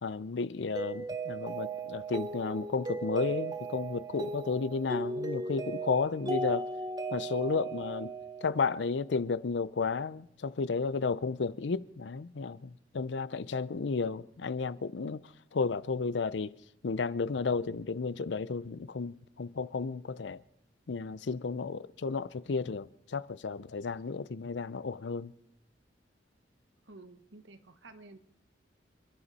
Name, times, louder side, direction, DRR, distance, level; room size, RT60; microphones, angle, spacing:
voice 1, 0.0-6.7 7.1-8.1 8.4-15.2 15.5-16.6 16.8-20.4 20.9-25.3, left 4 dB, 75° left, 0.5 m, -33 dB
Mallet percussion, 0.7-8.9, right 2 dB, 20° right, 0.9 m, -37 dB
voice 2, 26.9-28.2, right 2 dB, 85° right, 1.2 m, -52 dB
28.5 x 11.0 x 4.2 m
head